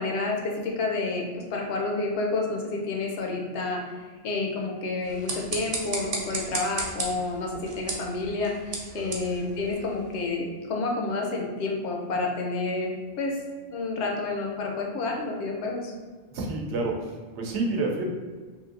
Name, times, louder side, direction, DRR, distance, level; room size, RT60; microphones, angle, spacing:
voice 1, 0.0-3.9 4.2-12.9 13.2-13.4 13.7-15.9, left 3 dB, 80° left, 0 dB, 0.9 m, -29 dB
sound 1, 5.0-10.3, right 3 dB, 60° right, 0.7 m, -35 dB
voice 2, 16.3-18.0, right 2 dB, 85° right, 1 dB, 0.9 m, -29 dB
3.2 x 2.6 x 2.5 m, 1.4 s
omnidirectional pair, 1.1 m